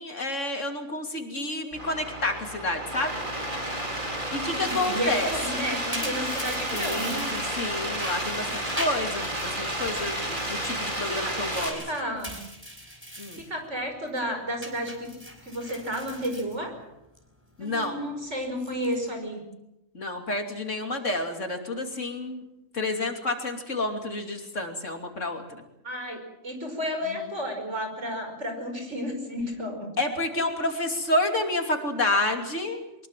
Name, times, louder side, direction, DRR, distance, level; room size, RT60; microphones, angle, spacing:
voice 1, 0.0-3.1 4.3-5.3 6.7-11.8 13.2-13.5 17.6-18.0 19.9-22.4 22.7-25.6 27.1-27.2 30.0-33.1, left 2 dB, 75° left, 4 dB, 3.3 m, -29 dB
sound 1, 1.7-11.7, right 1 dB, 40° right, 4.7 m, -31 dB
voice 2, 4.3-7.3 11.1-11.4 11.7-12.4 13.4-15.1 15.4-16.8 17.6-19.4 25.8-29.9, equal, 65° right, 4 dB, 5.6 m, -32 dB
sound 2, 4.6-7.6 7.9-9.5 9.8-13.5 13.8-14.2 14.6-17.2 17.5-17.9 18.5-19.1, equal, 10° right, 4.9 m, -41 dB
23.5 x 21.5 x 7.5 m, 0.91 s
omnidirectional pair, 1.3 m